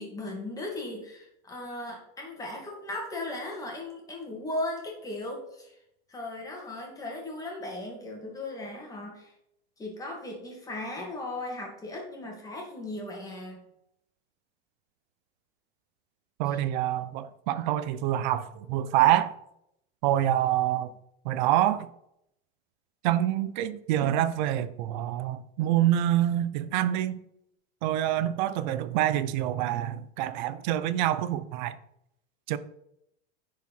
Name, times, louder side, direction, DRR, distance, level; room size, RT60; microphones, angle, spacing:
voice 1, 0.0-5.7 6.1-9.3 9.8-13.6 16.5-16.6, left 2 dB, 10° left, 2.2 m, -37 dB
voice 2, 16.4-19.3 20.0-20.9 21.2-21.9 23.0-27.2 27.8-31.7 32.5-32.6, right 12 dB, 45° right, 0.6 m, -26 dB
10.0 x 4.8 x 5.4 m
supercardioid pair, 160°, 33 cm